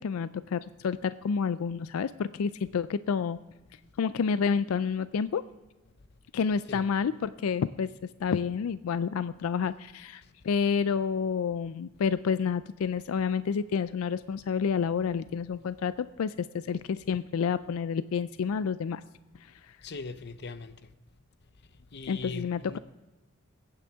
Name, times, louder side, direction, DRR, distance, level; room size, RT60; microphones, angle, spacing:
voice 1, 0.0-3.4 4.0-5.4 6.3-7.9 8.2-19.0 22.1-22.8, left 6 dB, 85° left, 0.4 m, -29 dB
voice 2, 19.8-20.9 21.7-22.8, left 3 dB, 55° left, 0.7 m, -41 dB
22.0 x 8.9 x 3.5 m
head